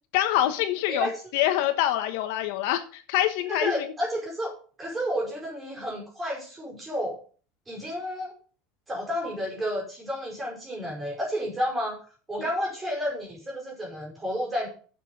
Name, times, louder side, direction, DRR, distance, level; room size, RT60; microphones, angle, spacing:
voice 1, 0.1-3.9, left 13 dB, 70° left, 8 dB, 1.2 m, -25 dB
voice 2, 3.5-4.5 4.8-7.2 7.7-8.3 8.9-12.0 12.3-14.7, equal, 10° right, -2 dB, 5.2 m, -31 dB
7.5 x 7.2 x 6.7 m, 0.40 s
cardioid pair, 160°, 0 cm